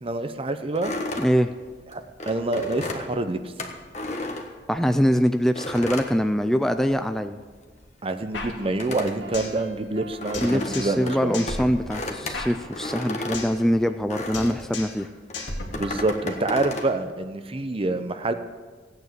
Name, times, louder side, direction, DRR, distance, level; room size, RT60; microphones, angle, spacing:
voice 1, 0.0-1.0 1.9-3.4 8.0-11.4 15.7-18.3, right 2 dB, 30° right, 9 dB, 0.7 m, -27 dB
sound 1, 0.8-5.1 5.6-7.0 7.3-14.7 15.3-16.9, left 2 dB, 40° left, 1.4 m, -34 dB
voice 2, 1.2-1.5 4.7-7.4 10.4-15.1, equal, ahead, 8 dB, 0.4 m, -23 dB
sound 2, 8.3-9.6 9.9-10.0 10.3-11.1 11.3-13.6 13.9-14.1 14.3-15.1 15.3-16.3, left 2 dB, 70° left, 2.3 m, -35 dB
sound 3, 9.0-13.2, right 7 dB, 80° right, 1.3 m, -45 dB
16.5 x 9.4 x 6.7 m, 1.4 s
head